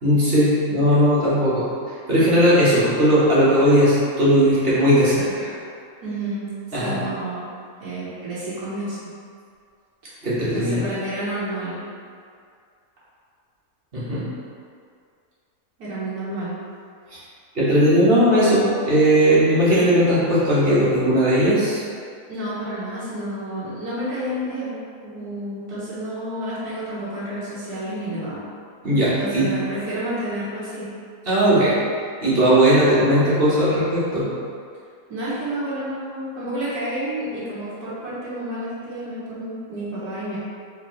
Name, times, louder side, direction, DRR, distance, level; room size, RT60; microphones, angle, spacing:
voice 1, 0.0-1.7 2.1-5.5 6.7-7.0 10.2-10.8 13.9-14.2 17.1-17.2 17.5-21.8 28.8-29.5 31.3-31.7 32.2-34.3, equal, 40° right, -10 dB, 1.4 m, -18 dB
voice 2, 6.0-7.5 7.8-9.0 10.5-11.8 15.8-16.5 22.3-28.4 29.2-30.9 35.1-40.4, right 1 dB, 85° right, -10 dB, 1.7 m, -30 dB
4.4 x 3.6 x 3.1 m, 2.3 s
omnidirectional pair, 1.6 m